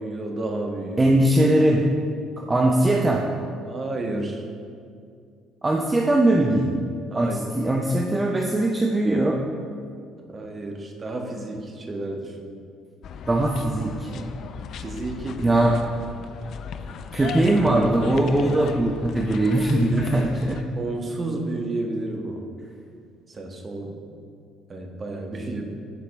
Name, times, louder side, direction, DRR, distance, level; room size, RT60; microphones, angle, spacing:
voice 1, 0.0-1.2 2.4-2.6 3.6-4.5 7.1-7.6 10.3-12.5 14.8-15.5 20.8-22.4 23.3-24.0 24.7-25.6, right 2 dB, 35° right, 2 dB, 1.4 m, -31 dB
voice 2, 1.0-1.8 2.5-3.3 5.6-6.8 7.1-9.4 13.3-14.3 15.4-15.8 17.1-20.6, right 1 dB, 20° right, 0 dB, 0.8 m, -20 dB
sound 1, 13.0-20.6, left 6 dB, 55° left, 0.4 m, -36 dB
13.5 x 4.9 x 3.5 m, 2.3 s
hypercardioid pair, 50°, 0 cm